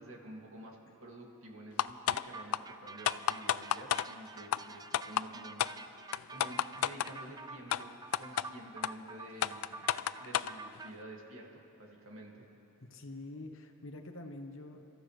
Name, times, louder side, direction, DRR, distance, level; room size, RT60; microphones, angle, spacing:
voice 1, 0.0-9.8 10.2-12.5, right 1 dB, 75° right, -1 dB, 2.3 m, -50 dB
sound 1, 1.8-2.2 2.5-2.6 3.1-4.1 4.5-4.6 4.9-5.3 5.6-5.7 6.1-7.1 7.7-7.8 8.1-8.5 8.8-8.9 9.4-10.5, left 10 dB, 85° left, 0.4 m, -30 dB
sound 2, 2.3-10.9, right 3 dB, 20° right, 0.4 m, -49 dB
voice 2, 12.9-14.8, left 2 dB, 65° left, 4 dB, 1.2 m, -46 dB
29.5 x 14.5 x 3.3 m, 2.8 s
head